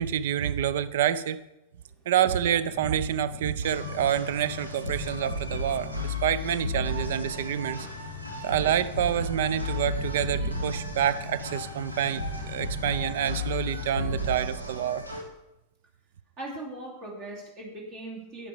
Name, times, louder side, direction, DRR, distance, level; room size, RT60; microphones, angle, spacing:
voice 1, 0.0-1.4 2.1-7.9 8.4-15.0, right 10 dB, 55° right, 16 dB, 0.5 m, -27 dB
sound 1, 2.7-13.9, left 9 dB, 50° left, 0.7 m, -42 dB
sound 2, 3.6-15.2, left 1 dB, 80° right, 1.8 m, -34 dB
voice 2, 16.4-18.5, right 1 dB, 40° right, -1 dB, 2.6 m, -40 dB
11.0 x 8.6 x 4.8 m, 0.92 s
figure-of-eight pair, 90°, 0 cm